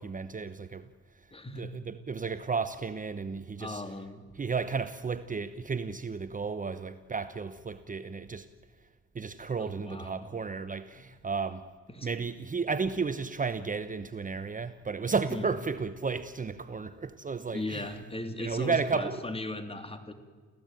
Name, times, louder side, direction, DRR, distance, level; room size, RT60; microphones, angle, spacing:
voice 1, 0.0-3.8 4.3-8.5 9.1-11.7 12.0-17.9 18.4-19.3, right 5 dB, 25° right, 1.0 m, -33 dB
voice 2, 1.3-1.8 3.6-4.3 9.6-10.3 11.9-12.1 15.3-15.5 17.5-20.1, left 1 dB, 20° left, 3.0 m, -37 dB
29.0 x 16.0 x 9.1 m
cardioid pair, 90°, 30 cm